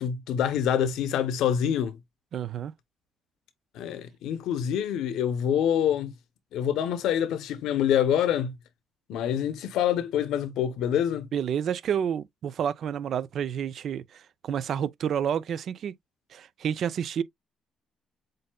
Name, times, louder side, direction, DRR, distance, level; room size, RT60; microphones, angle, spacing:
voice 1, 0.0-2.0 3.7-6.1 6.5-8.5 9.1-11.3, left 9 dB, 85° left, 0.8 m, -26 dB
voice 2, 2.3-2.7 11.3-15.9 16.3-17.2, right 8 dB, 65° right, 0.4 m, -29 dB
7.6 x 2.7 x 2.2 m
cardioid pair, 90°, 0 cm